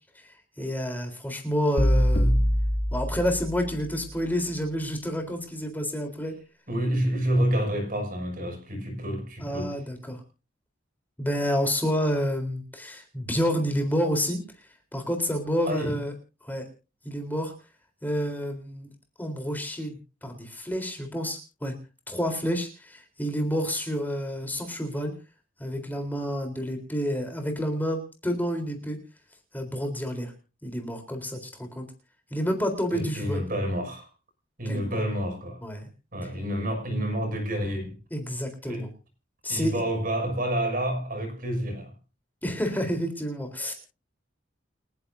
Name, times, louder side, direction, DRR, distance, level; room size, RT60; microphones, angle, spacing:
voice 1, 0.2-2.3 2.9-6.4 9.4-10.2 11.2-16.1 16.4-16.7 17.0-17.5 18.0-18.9 19.2-19.9 20.2-21.7 22.1-25.1 25.6-29.0 29.5-30.3 30.6-31.9 32.3-33.4 34.7-35.0 35.6-35.9 38.1-38.9 39.4-39.8 42.4-43.7, equal, 10° left, 3.8 m, -29 dB
sound 1, 1.8-3.9, equal, 55° left, 2.6 m, -24 dB
voice 2, 6.7-9.7 15.7-16.0 32.9-34.1 34.6-35.6 36.1-38.0 38.6-38.9 39.5-41.9, right 1 dB, 50° right, 6.4 m, -28 dB
29.5 x 10.5 x 2.7 m
head